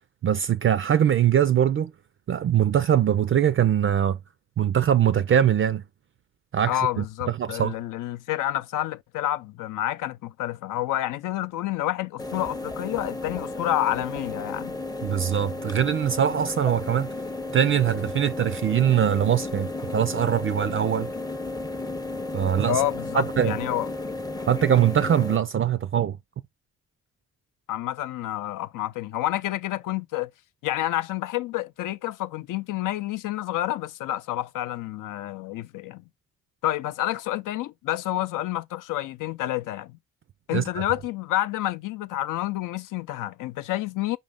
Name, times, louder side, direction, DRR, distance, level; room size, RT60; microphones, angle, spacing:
voice 1, 0.2-1.9 2.3-4.2 4.6-5.8 6.5-7.7 15.0-17.1 17.5-21.1 22.3-22.8 23.1-23.6 24.5-26.2 40.5-40.6, right 9 dB, 40° right, 0.4 m, -22 dB
voice 2, 6.7-14.8 22.7-23.9 27.7-30.3 30.6-36.0 36.6-40.0 40.5-44.2, left 14 dB, 65° left, 0.5 m, -29 dB
sound 1, 12.2-25.4, left 2 dB, 10° left, 0.6 m, -33 dB
5.2 x 2.6 x 3.5 m
hypercardioid pair, 45°, 34 cm